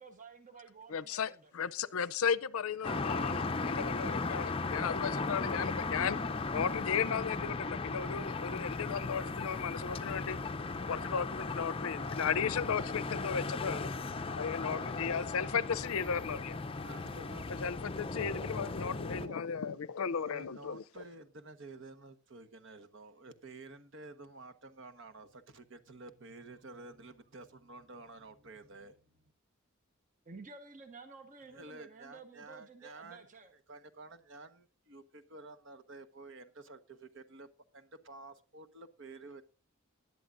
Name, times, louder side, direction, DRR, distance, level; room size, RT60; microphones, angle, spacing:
voice 1, 0.0-1.5 19.1-19.4 30.2-33.5, right 4 dB, 35° right, 1.1 m, -52 dB
voice 2, 0.9-6.2 6.5-10.4 10.8-13.9 14.4-16.6 17.5-20.8, left 6 dB, 75° left, 0.5 m, -35 dB
sound 1, 2.8-19.3, left 3 dB, 25° left, 0.5 m, -37 dB
voice 3, 16.8-17.5 20.2-29.2 31.5-39.4, right 3 dB, 60° right, 1.2 m, -51 dB
20.0 x 11.0 x 2.5 m
head